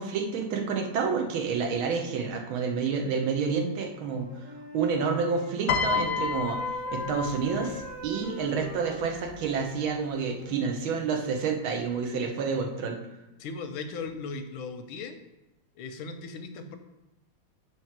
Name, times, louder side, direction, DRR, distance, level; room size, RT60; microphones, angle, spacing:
voice 1, 0.0-4.3 4.7-13.0, right 5 dB, 85° right, 2 dB, 1.8 m, -29 dB
Wind instrument woodwind instrument, 4.0-10.8, left 1 dB, 50° right, 3.0 m, -43 dB
Piano, 5.7-8.0 9.1-9.3, left 5 dB, 65° left, 1.0 m, -30 dB
voice 2, 13.4-15.2 15.8-16.8, left 4 dB, 90° left, 8 dB, 1.5 m, -37 dB
7.7 x 3.2 x 5.8 m, 0.96 s
omnidirectional pair, 2.2 m